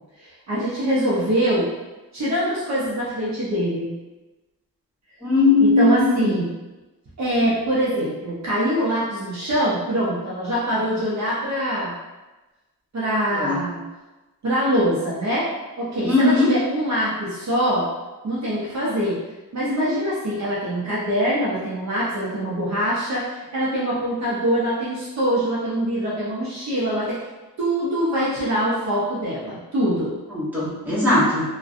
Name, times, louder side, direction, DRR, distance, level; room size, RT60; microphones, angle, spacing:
voice 1, 0.2-1.7 2.1-3.9 5.6-6.5 7.2-11.9 12.9-13.8 14.4-15.5 15.8-17.9 18.2-19.2 19.5-27.2 27.6-30.2, equal, 45° right, -8 dB, 0.6 m, -23 dB
voice 2, 5.2-6.4 13.3-13.6 16.0-16.5 30.3-31.4, left 2 dB, 5° right, -11 dB, 0.9 m, -19 dB
2.5 x 2.1 x 2.4 m, 1.1 s
wide cardioid pair, 155°, 37 cm